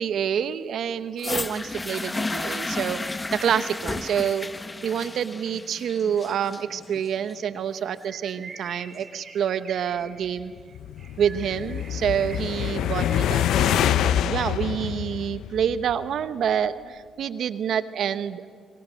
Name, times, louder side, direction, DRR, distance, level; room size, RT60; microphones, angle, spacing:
voice 1, 0.0-3.0 3.4-4.5 4.8-10.5 11.2-18.5, right 8 dB, 65° right, 13 dB, 0.9 m, -27 dB
sound 1, 1.2-9.2 10.0-10.1, left 2 dB, 20° left, 0.8 m, -33 dB
Bird, 8.0-14.3, right 4 dB, 40° right, 2.5 m, -46 dB
sound 2, 10.6-16.1, left 11 dB, 80° left, 0.5 m, -26 dB
26.5 x 22.5 x 6.4 m, 2.1 s
cardioid pair, 90°, 0 cm